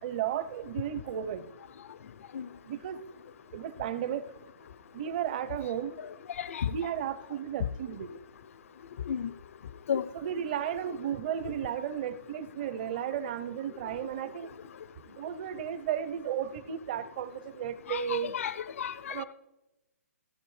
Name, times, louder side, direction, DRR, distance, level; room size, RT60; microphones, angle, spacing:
voice 1, 0.0-1.4 2.7-3.0 3.5-4.2 4.9-6.0 6.7-8.1 10.1-14.5 15.0-18.3 19.1-19.2, right 9 dB, 35° right, 14 dB, 0.7 m, -34 dB
voice 2, 6.4-6.7 9.1-9.3 9.9-10.0 17.9-19.2, left 8 dB, 60° left, 14 dB, 0.4 m, -32 dB
16.0 x 9.0 x 3.2 m, 0.97 s
hypercardioid pair, 160°, 8 cm